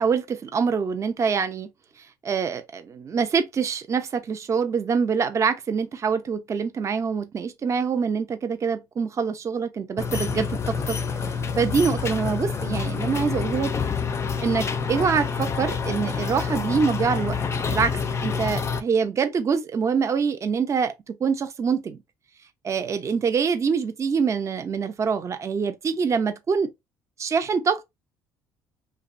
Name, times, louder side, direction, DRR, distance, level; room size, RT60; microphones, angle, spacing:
voice 1, 0.0-1.7 2.2-11.0 11.6-13.7 14.4-17.4 17.7-22.0 22.6-26.7 27.2-27.8, right 6 dB, 35° right, 0.5 m, -25 dB
sound 1, 10.0-18.8, left 5 dB, 35° left, 0.4 m, -27 dB
2.6 x 2.0 x 2.5 m
supercardioid pair, 75°, 8 cm